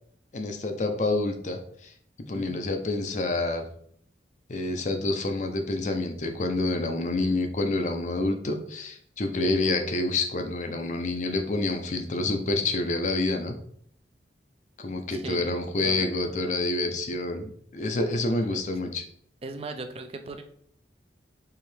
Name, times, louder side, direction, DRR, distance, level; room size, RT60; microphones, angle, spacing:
voice 1, 0.3-1.9 2.3-3.6 4.5-13.5 14.8-19.0, left 2 dB, 40° left, 6 dB, 0.5 m, -28 dB
voice 2, 15.1-15.4 15.8-16.3 18.3-18.6 19.4-20.4, right 3 dB, 35° right, 7 dB, 0.4 m, -38 dB
4.5 x 3.1 x 3.2 m, 0.64 s
head